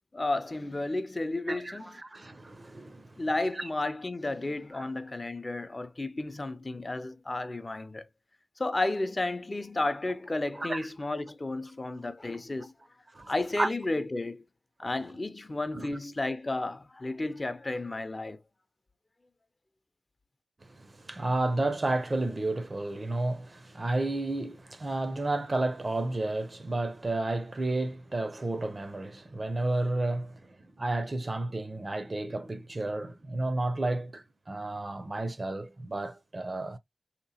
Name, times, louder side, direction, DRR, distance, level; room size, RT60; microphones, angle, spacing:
voice 1, 0.1-1.8 3.2-8.1 8.6-12.7 13.3-14.4 14.8-18.4, left 2 dB, 35° left, 0.5 m, -32 dB
voice 2, 1.5-3.2 3.6-3.7 4.7-4.8 10.6-10.9 13.1-13.7 14.8-14.9 15.7-16.0 20.6-36.8, right 2 dB, 40° right, 0.5 m, -32 dB
3.2 x 2.9 x 2.7 m
cardioid pair, 55°, 0 cm